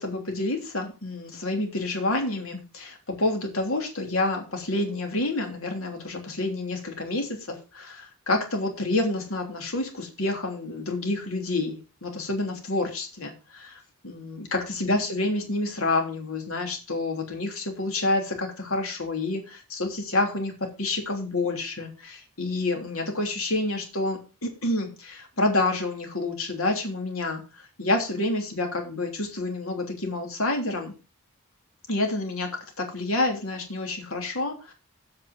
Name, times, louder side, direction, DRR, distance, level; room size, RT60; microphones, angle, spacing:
voice 1, 0.0-20.5 20.8-27.4 27.8-30.9 31.9-34.7, left 2 dB, 70° left, 3 dB, 3.1 m, -28 dB
8.3 x 5.3 x 7.8 m, 0.31 s
head